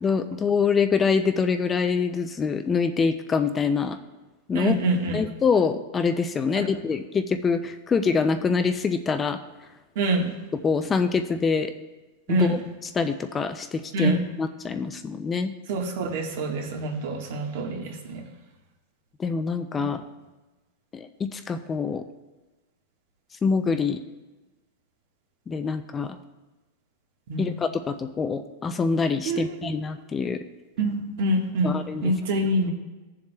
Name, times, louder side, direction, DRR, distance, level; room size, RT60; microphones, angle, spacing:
voice 1, 0.0-4.0 4.5-4.8 5.1-9.4 10.6-11.7 12.3-15.5 19.2-20.0 20.9-22.0 23.4-24.0 25.5-26.2 27.4-30.4 31.6-32.1, left 5 dB, 15° left, 8 dB, 0.3 m, -25 dB
voice 2, 4.5-5.2 6.5-6.6 9.9-10.3 12.3-12.6 13.9-14.2 15.7-18.2 19.8-19.9 27.3-27.5 29.3-29.7 30.8-31.7 32.0-32.7, right 2 dB, 55° right, 3 dB, 1.4 m, -26 dB
17.5 x 7.2 x 2.2 m, 1.1 s
supercardioid pair, 170°, 0 cm